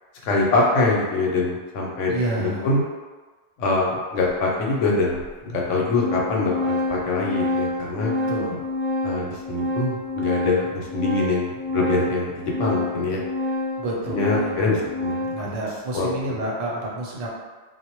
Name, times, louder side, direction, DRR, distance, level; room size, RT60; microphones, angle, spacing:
voice 1, 0.2-2.8 3.6-8.1 9.0-13.2 14.1-15.5 15.9-16.1, left 3 dB, 80° left, -2 dB, 0.9 m, -24 dB
voice 2, 2.1-2.7 8.3-8.7 13.8-17.3, right 1 dB, 90° right, -3 dB, 1.0 m, -29 dB
Organ, 4.3-4.4 5.2-5.3 5.6-15.5, left 2 dB, 35° left, 0.8 m, -28 dB
2.2 x 2.0 x 2.8 m, 1.3 s
omnidirectional pair, 1.3 m